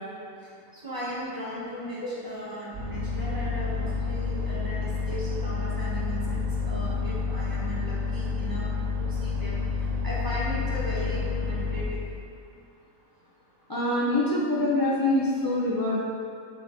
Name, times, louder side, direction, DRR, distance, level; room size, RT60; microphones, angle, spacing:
voice 1, 0.4-8.7 8.9-12.0, equal, 15° right, -8 dB, 1.0 m, -37 dB
sound 1, 2.7-11.8, left 4 dB, 45° right, 1.4 m, -29 dB
voice 2, 13.7-16.0, left 1 dB, 25° left, -8 dB, 0.5 m, -24 dB
6.3 x 4.2 x 3.6 m, 2.3 s
omnidirectional pair, 1.5 m